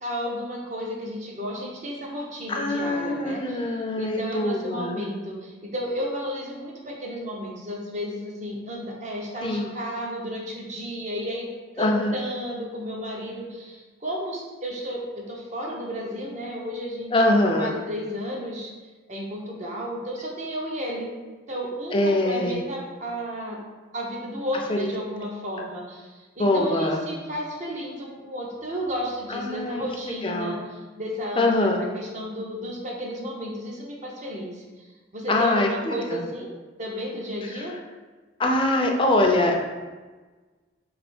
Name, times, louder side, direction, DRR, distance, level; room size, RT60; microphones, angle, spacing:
voice 1, 0.0-11.5 11.7-18.7 19.1-21.1 21.5-23.6 23.9-34.9 35.1-36.5 36.8-37.7, equal, 40° right, -1 dB, 0.8 m, -33 dB
voice 2, 2.5-5.0 9.4-9.7 11.8-12.1 17.1-17.7 21.9-22.6 24.7-24.8 26.4-27.0 29.3-29.8 30.2-30.6 31.4-31.8 35.3-36.2 37.5-37.6 38.4-39.5, left 1 dB, 25° left, 1 dB, 0.5 m, -23 dB
3.5 x 3.3 x 4.2 m, 1.3 s
head